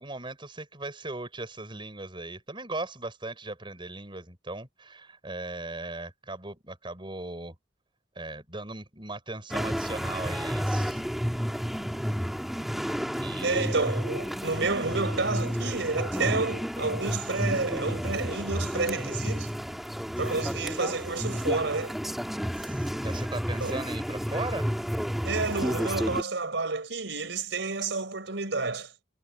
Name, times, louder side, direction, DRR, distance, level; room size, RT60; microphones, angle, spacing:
voice 1, 0.0-7.5 8.1-11.0 13.1-13.8 20.4-20.6 22.5-24.8, right 2 dB, 25° right, 6.0 m, -38 dB
sound 1, 9.5-26.2, equal, ahead, 1.8 m, -31 dB
voice 2, 13.4-19.5 20.2-21.9 23.6-23.8 25.2-28.9, right 3 dB, 75° right, 4.6 m, -30 dB
head